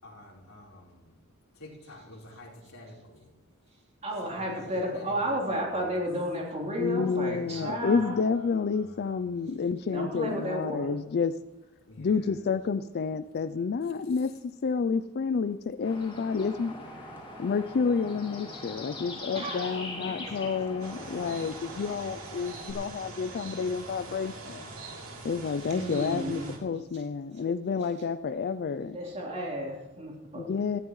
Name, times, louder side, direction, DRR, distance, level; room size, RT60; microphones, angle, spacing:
voice 1, 0.0-1.1 1.5-3.3 4.2-4.7 4.9-6.0 7.4-9.3 11.8-12.5 13.8-14.3, left 1 dB, 80° left, -3 dB, 4.2 m, -49 dB
voice 2, 4.0-8.2 9.9-10.9 19.3-20.4 24.9-25.0 25.7-26.5 26.9-27.0 28.8-30.5, equal, 30° right, -2 dB, 3.6 m, -33 dB
voice 3, 6.8-11.3 12.0-14.3 14.6-16.7 17.4-24.7 25.2-29.0 30.3-30.8, left 5 dB, 50° left, 13 dB, 0.4 m, -29 dB
sound 1, 15.8-22.0, left 2 dB, 25° left, 2.3 m, -42 dB
sound 2, 16.0-22.7, right 1 dB, 10° right, 1.3 m, -49 dB
sound 3, 20.8-26.6, right 3 dB, 80° right, 3.2 m, -43 dB
19.5 x 14.0 x 3.2 m, 1.1 s
head